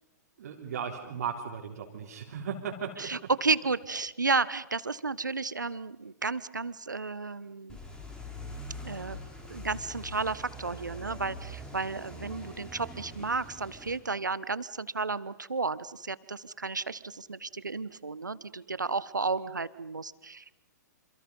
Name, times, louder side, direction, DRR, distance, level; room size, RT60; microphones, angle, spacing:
voice 1, 0.4-3.1, right 7 dB, 60° right, -1 dB, 3.6 m, -36 dB
voice 2, 3.0-7.8 8.8-9.2 9.5-20.5, right 4 dB, 85° right, 17 dB, 1.1 m, -32 dB
sound 1, 7.7-14.0, equal, 10° left, 4.9 m, -43 dB
27.5 x 27.5 x 5.5 m, 0.88 s
figure-of-eight pair, 115°, 10 cm